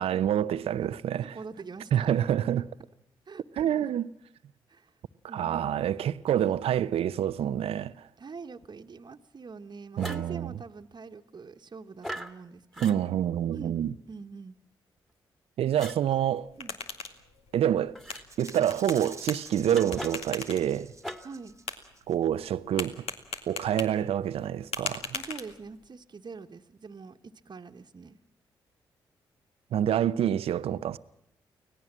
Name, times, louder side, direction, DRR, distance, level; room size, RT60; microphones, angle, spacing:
voice 1, 0.0-1.4 1.9-2.7 3.6-4.1 5.3-8.1 10.0-10.5 12.8-13.9 15.6-16.5 17.5-17.9 18.4-20.9 22.1-23.0 23.5-25.1 29.7-31.0, right 10 dB, 75° right, 0.7 m, -27 dB
voice 2, 1.1-2.2 3.3-3.9 4.7-4.9 5.3-5.7 6.4-6.7 7.4-7.5 8.2-13.1 13.5-13.7 14.1-14.6 16.6-16.8 21.2-21.5 25.1-28.2, right 4 dB, 45° right, 1.3 m, -44 dB
sound 1, 10.0-10.3 12.0-12.3 12.7-13.0 15.7-16.0 17.9-18.2 19.7-20.4 21.0-21.4, equal, 5° left, 2.1 m, -39 dB
sound 2, 16.3-25.9, left 4 dB, 75° left, 2.2 m, -41 dB
Rattle (instrument), 18.3-22.1, right 3 dB, 30° right, 1.4 m, -47 dB
25.0 x 17.0 x 7.5 m
supercardioid pair, 50°, 10 cm